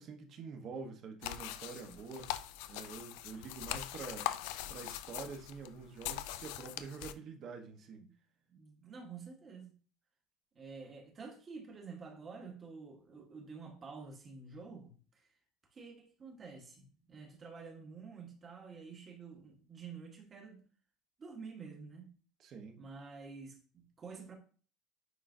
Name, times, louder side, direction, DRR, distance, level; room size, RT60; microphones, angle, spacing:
voice 1, 0.0-2.3 2.7-4.3 4.7-8.0 22.4-22.8, right 5 dB, 40° right, 1.1 m, -46 dB
sound 1, 1.2-7.1, left 13 dB, 80° left, 0.4 m, -41 dB
voice 2, 8.5-9.8 10.5-15.3 15.7-20.7 21.2-22.1 22.8-24.4, right 5 dB, 25° right, 1.4 m, -49 dB
9.4 x 3.8 x 2.7 m
cardioid pair, 160°, 0 cm